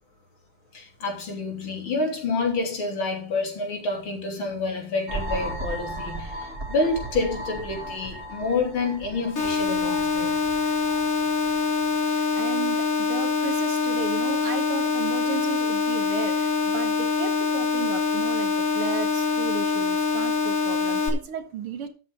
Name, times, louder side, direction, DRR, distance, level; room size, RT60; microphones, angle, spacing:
voice 1, 0.7-10.4, left 3 dB, 70° left, 4.0 m, -28 dB
sound 1, 5.1-11.8, right 1 dB, 30° right, 2.8 m, -36 dB
sound 2, 9.4-21.1, left 4 dB, 40° left, 2.5 m, -24 dB
voice 2, 12.1-21.9, right 8 dB, 80° right, 2.5 m, -35 dB
13.0 x 8.4 x 3.8 m
omnidirectional pair, 2.4 m